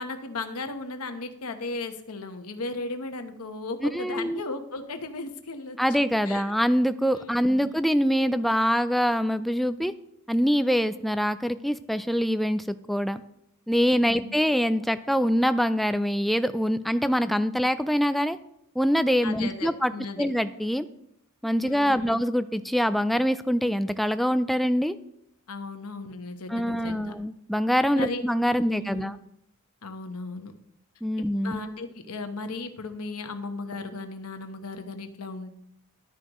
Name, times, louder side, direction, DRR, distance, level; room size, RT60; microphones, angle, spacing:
voice 1, 0.0-5.8 6.2-6.5 7.3-7.7 13.9-14.3 19.2-20.3 21.6-22.1 25.5-27.1 27.9-28.2 28.5-29.1 29.8-30.5 31.2-35.5, left 3 dB, 75° left, 7 dB, 1.0 m, -36 dB
voice 2, 3.9-4.4 5.8-9.9 10.3-13.2 13.7-18.4 18.8-19.9 20.2-20.9 21.4-25.0 26.5-29.1 31.0-31.6, equal, ahead, 11 dB, 0.3 m, -24 dB
12.0 x 9.8 x 3.0 m, 0.76 s
head